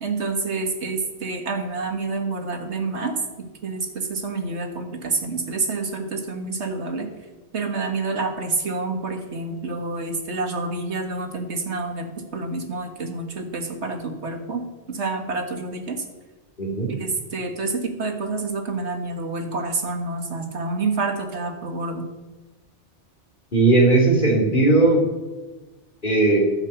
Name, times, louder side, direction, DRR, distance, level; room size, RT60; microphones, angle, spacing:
voice 1, 0.0-3.2 3.6-7.1 7.5-16.0 17.0-22.1, right 3 dB, 70° right, 5 dB, 1.8 m, -28 dB
voice 2, 16.6-16.9 23.5-25.0 26.0-26.5, right 2 dB, 45° left, -2 dB, 3.1 m, -17 dB
11.5 x 6.5 x 8.1 m, 1.2 s
omnidirectional pair, 1.2 m